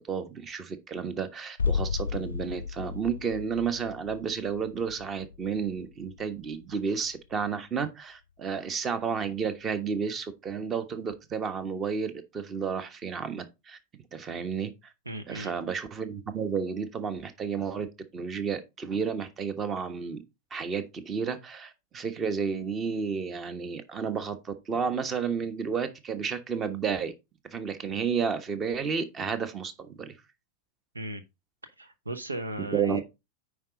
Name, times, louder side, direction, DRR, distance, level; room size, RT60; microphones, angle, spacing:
voice 1, 0.0-13.8 14.1-14.7 15.3-20.2 20.5-27.1 27.5-30.1 32.6-33.0, right 6 dB, 25° right, 1.2 m, -31 dB
sound 1, 1.6-7.3 7.6-7.7, left 6 dB, 75° left, 0.3 m, -34 dB
voice 2, 15.1-15.5 30.9-31.2 31.6-33.0, right 1 dB, 80° right, 0.8 m, -36 dB
9.5 x 4.8 x 3.8 m
figure-of-eight pair, 90°, 0 cm